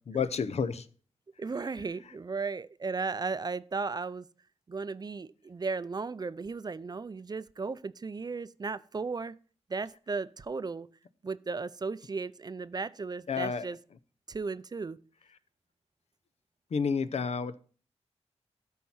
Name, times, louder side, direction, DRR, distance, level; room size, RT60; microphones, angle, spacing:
voice 1, 0.1-0.9 13.3-13.7 16.7-17.6, left 6 dB, 70° left, 0.7 m, -30 dB
voice 2, 1.4-4.3 4.7-9.3 9.7-10.9 11.2-13.8 14.3-15.0, right 4 dB, 35° right, 0.5 m, -35 dB
13.0 x 4.5 x 5.5 m
wide cardioid pair, 110°, 11 cm